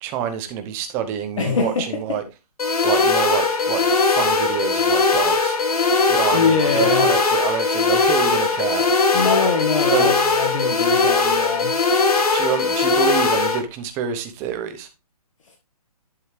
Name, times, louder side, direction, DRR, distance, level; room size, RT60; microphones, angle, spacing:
voice 1, 0.0-2.2 2.8-5.6 6.1-8.9 9.9-10.1 12.3-14.9, right 9 dB, 10° right, 0.8 m, -27 dB
voice 2, 1.4-2.2 6.3-7.1 9.1-11.8, left 4 dB, 50° left, 1.7 m, -23 dB
sound 1, 2.6-13.6, left 4 dB, 70° left, 2.8 m, -19 dB
11.0 x 5.5 x 3.3 m
hypercardioid pair, 165°, 20 cm